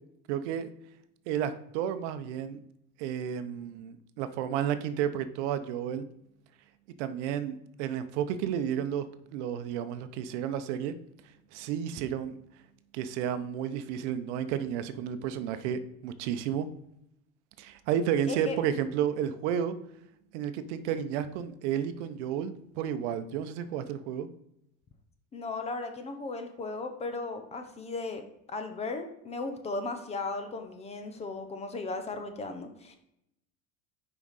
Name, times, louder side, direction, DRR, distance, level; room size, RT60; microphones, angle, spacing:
voice 1, 0.3-0.7 1.3-2.6 3.0-6.1 7.0-9.1 9.3-11.0 11.5-12.4 12.9-16.7 17.6-19.8 20.3-24.3, right 9 dB, 75° right, 11 dB, 0.8 m, -32 dB
voice 2, 25.3-28.2 28.5-33.0, left 3 dB, 20° left, 7 dB, 0.6 m, -36 dB
6.0 x 5.1 x 4.1 m, 0.78 s
cardioid pair, 150°, 35 cm